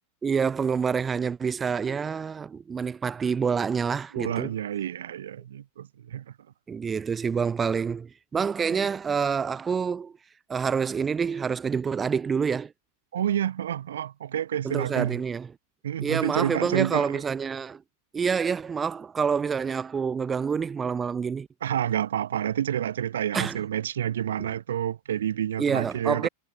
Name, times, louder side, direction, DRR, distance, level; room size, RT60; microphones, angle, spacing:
voice 1, 0.2-4.5 6.7-10.1 10.5-12.7 14.6-15.5 16.0-17.8 18.1-21.5 23.3-23.6 25.6-26.3, right 6 dB, 20° right, 0.6 m, -27 dB
voice 2, 4.1-6.3 13.1-15.2 15.8-17.2 21.6-26.3, right 10 dB, 65° right, 0.7 m, -29 dB
figure-of-eight pair, 90°, 0 cm